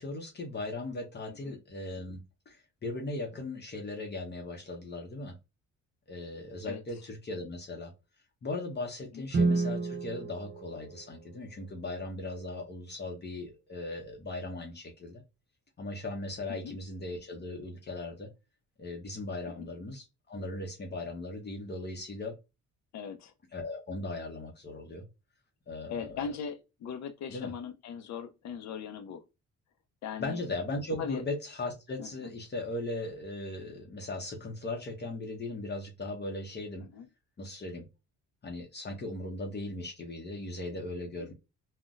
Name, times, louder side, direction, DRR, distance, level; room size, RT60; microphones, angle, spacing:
voice 1, 0.0-2.2 2.5-5.4 6.1-7.9 8.4-15.2 15.8-18.3 18.8-22.3 23.5-25.0 25.7-26.3 27.3-27.5 30.2-36.9 37.4-37.9 38.4-41.3, left 2 dB, 35° left, 0.8 m, -38 dB
Guitar, 9.3-11.9, right 3 dB, 40° right, 0.7 m, -31 dB
voice 2, 22.9-23.3 25.9-29.2 30.0-30.4 31.0-31.2 32.0-32.3 36.8-37.1 41.2-41.3, left 7 dB, 65° left, 0.6 m, -39 dB
3.8 x 2.2 x 2.4 m
cardioid pair, 90°, 30 cm